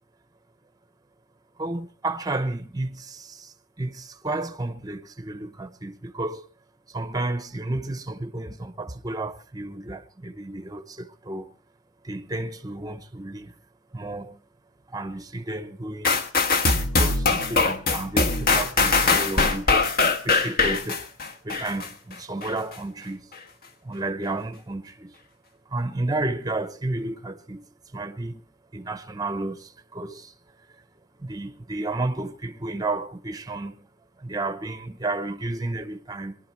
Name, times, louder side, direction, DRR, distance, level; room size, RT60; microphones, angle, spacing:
voice 1, 1.6-6.5 6.9-11.5 12.0-13.5 13.9-14.4 14.9-16.2 16.8-21.1 21.4-23.3 23.8-25.1 25.7-27.7 27.9-28.4 28.7-30.3 30.7-30.8 31.2-33.9 34.2-36.4, right 2 dB, 15° right, 0.8 m, -32 dB
sound 1, 16.0-21.9 22.4-22.5, left 3 dB, 40° left, 1.4 m, -22 dB
22.5 x 11.5 x 4.4 m
head